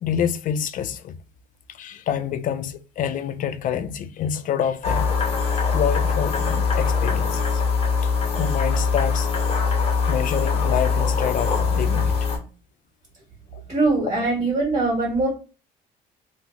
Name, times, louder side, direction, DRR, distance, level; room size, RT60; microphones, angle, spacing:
voice 1, 0.0-1.2 1.7-5.1 5.7-7.6 8.0-8.1 8.4-9.3 10.1-12.2 13.5-13.6, left 8 dB, 55° left, 0.4 m, -27 dB
sound 1, 4.8-12.4, left 5 dB, 35° left, 1.0 m, -22 dB
voice 2, 13.7-15.3, right 3 dB, 45° right, 1.5 m, -22 dB
3.0 x 2.3 x 3.7 m
cardioid pair, 110°, 17 cm